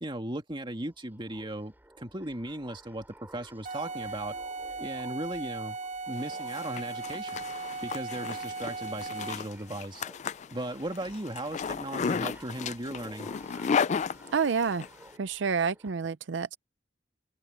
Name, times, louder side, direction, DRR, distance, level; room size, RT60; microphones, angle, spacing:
voice 1, 0.0-3.1 3.3-4.4 4.8-5.8 6.1-7.4 7.8-10.0 10.5-13.3, right 1 dB, 25° right, 2.3 m, -37 dB
sound 1, 0.6-15.9, right 1 dB, 10° right, 3.9 m, -54 dB
sound 2, 3.6-9.5, right 4 dB, 45° right, 1.8 m, -38 dB
Zipper (clothing), 6.2-14.9, left 6 dB, 40° left, 0.3 m, -34 dB
voice 2, 14.3-14.8 15.2-16.6, right 5 dB, 80° right, 0.5 m, -28 dB
open air
head